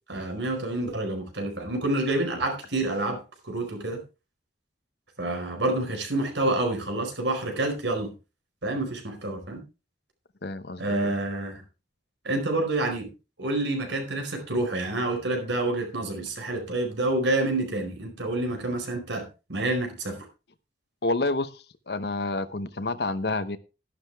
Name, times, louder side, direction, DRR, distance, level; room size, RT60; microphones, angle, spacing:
voice 1, 0.1-4.0 5.2-8.1 8.6-9.6 10.8-11.6 12.2-13.1 13.4-20.3, right 2 dB, 90° right, 4.7 m, -28 dB
voice 2, 10.4-11.1 21.0-23.6, left 2 dB, 65° left, 0.9 m, -29 dB
12.0 x 11.5 x 3.5 m
head